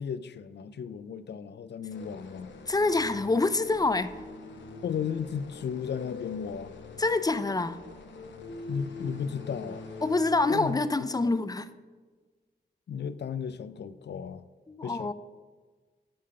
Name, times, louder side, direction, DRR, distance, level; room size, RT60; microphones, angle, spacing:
voice 1, 0.0-2.5 4.8-6.7 8.7-9.8 10.5-10.8 12.9-14.4 14.8-15.1, left 7 dB, 65° left, 14 dB, 0.5 m, -35 dB
sound 1, 1.9-10.7, left 3 dB, 85° left, 1.1 m, -44 dB
voice 2, 2.7-4.1 7.0-7.8 10.0-11.7 14.7-15.1, left 3 dB, 20° left, 13 dB, 0.5 m, -26 dB
8.5 x 5.6 x 5.6 m, 1.4 s
cardioid pair, 60°, 19 cm